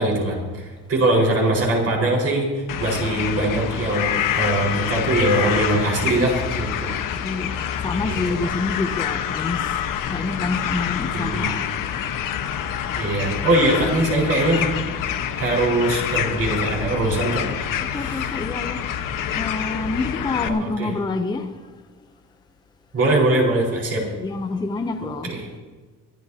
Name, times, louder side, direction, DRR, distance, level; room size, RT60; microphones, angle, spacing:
voice 1, 0.0-7.0 8.0-8.1 11.1-11.5 12.9-14.7 15.4-17.5 17.9-18.4 20.4-20.9 22.9-24.0 25.2-25.4, right 1 dB, 45° right, 4.6 m, -22 dB
sound 1, 2.7-20.5, left 9 dB, 75° left, 1.2 m, -27 dB
voice 2, 7.2-7.5 7.8-9.7 10.1-11.7 17.8-18.8 19.3-21.6 24.1-25.4, left 3 dB, 15° left, 0.6 m, -27 dB
24.5 x 13.0 x 2.8 m
cardioid pair, 170°, 33 cm